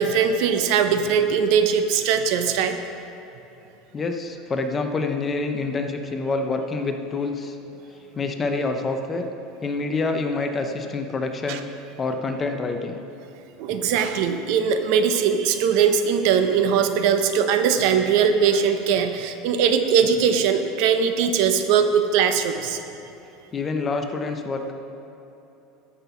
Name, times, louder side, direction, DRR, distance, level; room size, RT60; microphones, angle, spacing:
voice 1, 0.0-2.8 11.5-11.6 13.6-22.8, right 7 dB, 60° right, 8 dB, 0.8 m, -20 dB
voice 2, 3.9-7.6 8.2-9.3 9.6-11.6 12.0-13.0 23.5-24.7, left 3 dB, 20° left, 5 dB, 0.7 m, -27 dB
14.0 x 6.0 x 5.7 m, 2.9 s
supercardioid pair, 145°, 0 cm